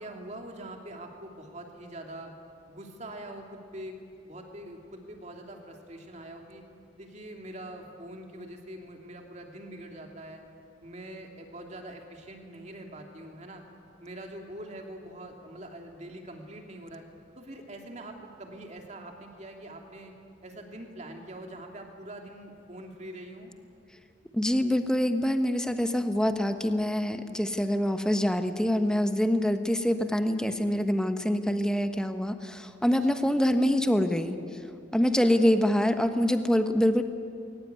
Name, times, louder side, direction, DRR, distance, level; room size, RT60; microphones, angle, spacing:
voice 1, 0.0-2.3 2.7-6.6 7.0-10.4 10.8-13.6 14.0-17.0 17.4-20.1 20.4-23.5 33.1-33.3 34.9-35.3, right 1 dB, 40° right, 2 dB, 2.9 m, -44 dB
voice 2, 24.3-34.4 34.9-37.0, equal, 5° left, 7 dB, 1.1 m, -25 dB
21.0 x 19.0 x 9.5 m, 2.4 s
head